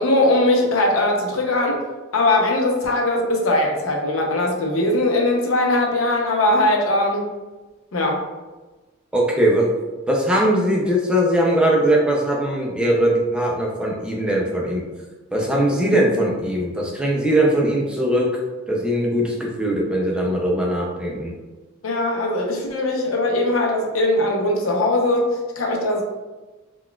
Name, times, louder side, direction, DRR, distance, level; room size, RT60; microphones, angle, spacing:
voice 1, 0.0-1.8 2.1-7.3 7.9-8.2 21.8-26.0, left 1 dB, 80° left, 1 dB, 0.6 m, -20 dB
voice 2, 9.1-9.7 10.1-14.8 15.3-18.3 18.7-21.3, right 1 dB, 5° right, -2 dB, 0.3 m, -20 dB
3.8 x 2.2 x 2.2 m, 1.2 s
head